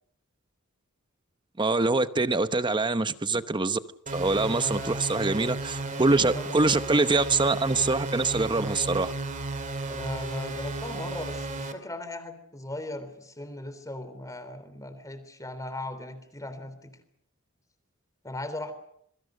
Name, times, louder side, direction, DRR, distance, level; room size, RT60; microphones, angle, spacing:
voice 1, 1.6-3.8 4.1-9.1, right 3 dB, 20° right, 0.9 m, -24 dB
sound 1, 4.1-11.7, right 2 dB, 35° right, 2.6 m, -34 dB
voice 2, 4.5-5.0 5.8-7.0 9.9-17.0 18.2-18.7, left 1 dB, 15° left, 3.6 m, -38 dB
27.0 x 23.0 x 6.6 m
head